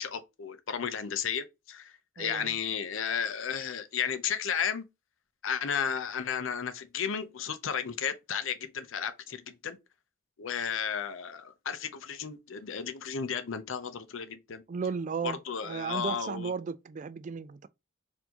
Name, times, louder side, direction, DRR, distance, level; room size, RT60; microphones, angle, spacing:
voice 1, 0.0-4.9 5.4-9.8 10.4-14.6 15.2-16.5, left 7 dB, 70° left, 0.6 m, -33 dB
voice 2, 2.2-2.6 14.7-15.4 15.6-17.7, right 5 dB, 35° right, 0.3 m, -35 dB
4.4 x 2.7 x 2.8 m
head